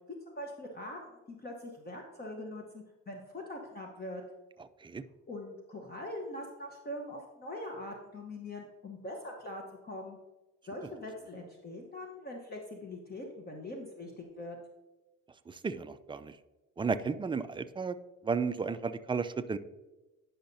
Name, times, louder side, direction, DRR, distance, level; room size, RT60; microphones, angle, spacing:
voice 1, 0.3-4.2 5.3-10.2 10.6-14.6, left 1 dB, 30° left, 1 dB, 1.1 m, -42 dB
voice 2, 4.6-5.0 15.5-16.4 16.8-18.0 18.2-19.6, right 5 dB, 15° right, 11 dB, 0.3 m, -33 dB
10.0 x 5.6 x 2.7 m, 1.1 s
cardioid pair, 90°, 30 cm